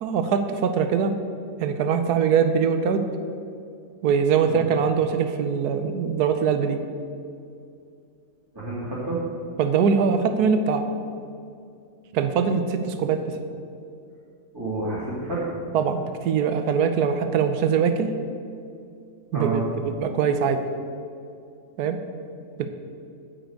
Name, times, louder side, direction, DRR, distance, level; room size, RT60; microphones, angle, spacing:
voice 1, 0.0-1.2 1.6-3.0 4.0-6.8 9.6-10.8 12.1-13.3 15.7-18.1 19.3-20.6 21.8-22.0 22.6-22.7, right 6 dB, 80° right, 8 dB, 1.3 m, -22 dB
voice 2, 8.5-9.2 14.5-15.4 19.3-19.6, right 2 dB, 15° right, -9 dB, 2.3 m, -29 dB
9.5 x 6.2 x 7.9 m, 2.5 s
omnidirectional pair, 1.7 m